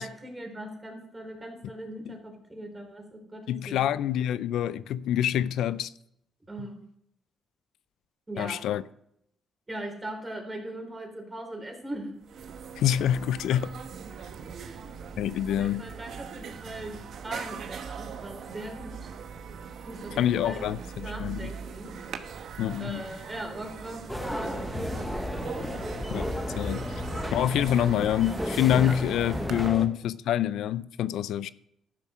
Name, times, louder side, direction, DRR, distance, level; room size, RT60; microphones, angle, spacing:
voice 1, 0.0-3.8 6.5-6.8 8.3-8.6 9.7-12.1 14.5-15.0 15.5-19.0 19.9-20.6 21.0-21.9 22.8-25.2 28.8-29.0 29.6-29.8, right 1 dB, 20° right, 3.5 m, -40 dB
voice 2, 3.5-5.9 8.4-8.8 12.8-13.7 15.2-15.8 20.2-21.5 22.6-23.0 26.1-26.8 27.3-31.5, left 11 dB, 80° left, 0.4 m, -26 dB
sound 1, 11.9-12.0 12.2-29.7, right 6 dB, 65° right, 1.0 m, -41 dB
sound 2, 24.1-29.9, left 1 dB, 5° left, 1.1 m, -33 dB
12.0 x 7.2 x 6.1 m
cardioid pair, 90°, 0 cm